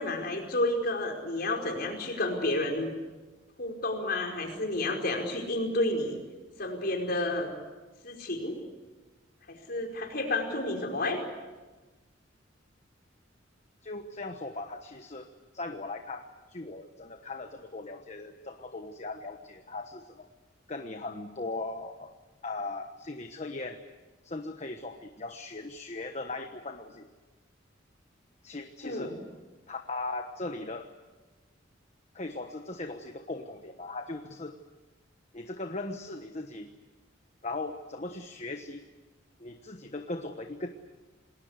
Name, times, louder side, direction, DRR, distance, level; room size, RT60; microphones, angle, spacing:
voice 1, 0.0-2.9 3.6-6.2 6.6-7.5 8.0-8.6 9.5-11.2 28.8-29.2, left 2 dB, 55° left, 2 dB, 5.0 m, -30 dB
voice 2, 13.8-20.3 20.7-22.1 22.4-23.8 24.2-27.1 28.4-29.1 29.7-30.9 32.1-34.6 35.3-36.7 37.4-38.8 39.4-40.7, left 2 dB, 35° left, 6 dB, 1.2 m, -38 dB
28.0 x 20.0 x 8.3 m, 1.2 s
head